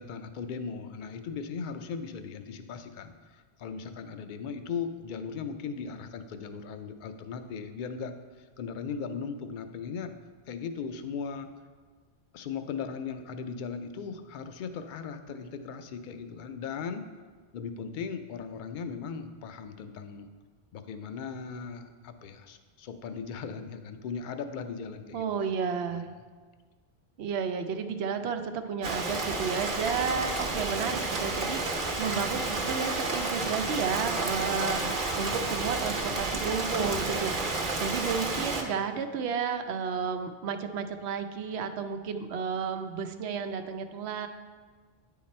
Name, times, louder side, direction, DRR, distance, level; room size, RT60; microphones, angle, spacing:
voice 1, 0.0-10.1 10.5-11.5 12.3-17.0 17.5-20.3 20.7-25.5 25.9-26.0, left 6 dB, 60° left, 8 dB, 0.6 m, -38 dB
voice 2, 25.1-26.1 27.2-34.8 35.2-44.3, right 6 dB, 90° right, 8 dB, 0.8 m, -32 dB
Rain, 28.8-38.6, right 2 dB, 55° right, 0.9 m, -31 dB
9.4 x 3.9 x 4.2 m, 1.5 s
omnidirectional pair, 1.1 m